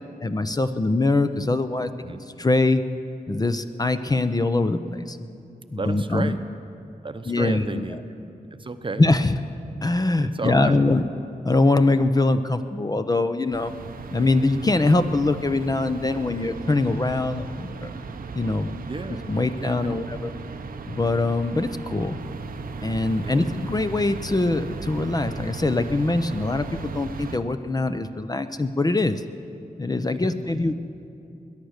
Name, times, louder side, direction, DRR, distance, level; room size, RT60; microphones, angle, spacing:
voice 1, 0.0-1.9 2.4-2.8 3.3-5.2 5.7-6.4 7.3-7.8 9.0-9.4 9.8-11.0 11.4-13.7 14.1-17.9 18.3-18.7 19.3-20.3 20.9-22.2 22.8-29.2 29.8-30.7, left 2 dB, 25° left, 9 dB, 0.6 m, -23 dB
voice 2, 5.8-6.4 7.0-9.0 10.2-10.8 18.9-19.2 19.6-20.0 23.2-23.6 30.2-30.6, right 3 dB, 35° right, 9 dB, 0.8 m, -33 dB
sound 1, 13.5-27.4, right 4 dB, 90° right, 0.8 m, -36 dB
21.5 x 10.5 x 6.5 m, 2.7 s
wide cardioid pair, 80°, 14 cm